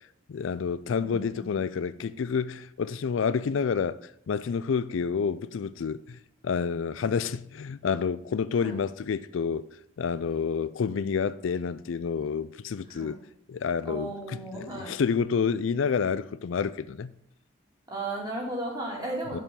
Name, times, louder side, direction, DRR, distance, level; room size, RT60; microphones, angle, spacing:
voice 1, 0.3-4.0 4.3-9.7 10.0-13.2 13.5-17.2 19.3-19.4, left 6 dB, 85° left, 0.4 m, -29 dB
voice 2, 0.9-1.6 8.6-8.8 12.9-13.2 13.8-15.0 17.9-19.4, right 2 dB, 20° right, 2.5 m, -35 dB
7.6 x 5.5 x 6.8 m
head